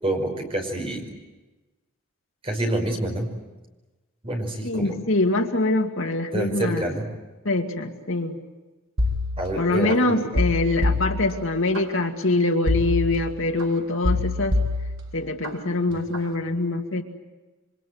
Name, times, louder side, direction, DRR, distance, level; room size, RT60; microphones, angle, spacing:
voice 1, 0.0-1.1 2.4-3.3 4.2-5.0 6.3-7.1 9.4-10.2, right 1 dB, 25° right, 2 dB, 5.3 m, -27 dB
voice 2, 4.6-6.9 7.4-8.4 9.6-14.6 15.1-17.0, left 2 dB, 65° left, 3 dB, 2.3 m, -24 dB
sound 1, 9.0-9.9 10.3-11.8 12.7-13.6 14.0-15.5 15.9-16.3, left 2 dB, 75° right, 3.5 m, -26 dB
27.5 x 25.0 x 8.0 m, 1.2 s
head